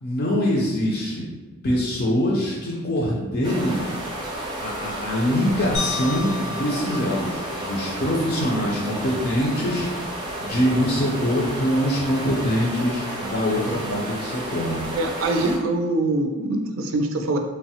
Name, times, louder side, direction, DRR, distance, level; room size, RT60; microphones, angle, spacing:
voice 1, 0.0-1.3 1.6-3.9 4.6-9.9 10.4-14.9, equal, 50° left, -4 dB, 0.4 m, -24 dB
sound 1, 3.4-15.6, right 1 dB, 20° right, 0.5 m, -32 dB
sound 2, 5.7-8.1, left 4 dB, 80° left, 0.8 m, -33 dB
voice 2, 14.9-17.4, right 2 dB, 70° right, 4 dB, 0.3 m, -24 dB
3.1 x 2.0 x 2.7 m, 1.2 s
head